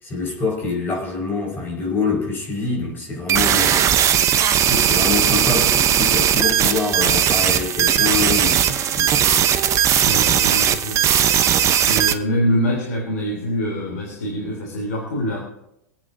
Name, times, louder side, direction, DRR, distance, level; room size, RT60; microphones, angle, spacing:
voice 1, 0.0-3.8 4.6-9.3, left 3 dB, 20° left, -2 dB, 5.2 m, -25 dB
sound 1, 3.3-12.1, right 9 dB, 35° right, 0.9 m, -18 dB
voice 2, 10.0-11.0 11.9-15.4, equal, 65° left, -1 dB, 3.5 m, -24 dB
26.0 x 8.9 x 2.7 m, 0.82 s
figure-of-eight pair, 95°, 10 cm